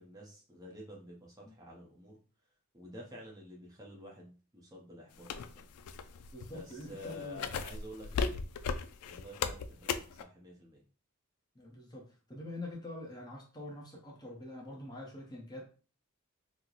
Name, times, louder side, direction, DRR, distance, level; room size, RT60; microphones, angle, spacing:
voice 1, 0.0-2.2 2.7-5.6 6.4-10.8, left 1 dB, 15° right, -3 dB, 0.7 m, -50 dB
sound 1, 5.2-10.2, left 5 dB, 85° left, 0.3 m, -36 dB
voice 2, 6.3-7.4 11.6-15.7, left 1 dB, 20° left, -2 dB, 0.7 m, -45 dB
3.0 x 2.1 x 3.9 m, 0.37 s
head